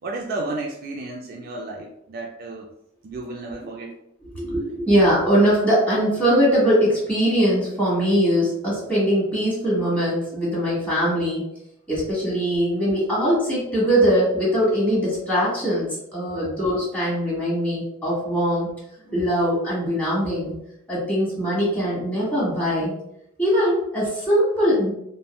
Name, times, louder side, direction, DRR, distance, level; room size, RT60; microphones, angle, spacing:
voice 1, 0.0-2.7 3.0-3.9, right 2 dB, 45° right, 1 dB, 0.3 m, -32 dB
voice 2, 4.3-11.5 11.9-18.7 19.1-20.6 20.9-22.9 23.4-24.9, equal, 5° left, -8 dB, 1.4 m, -21 dB
3.5 x 2.1 x 2.2 m, 0.78 s
head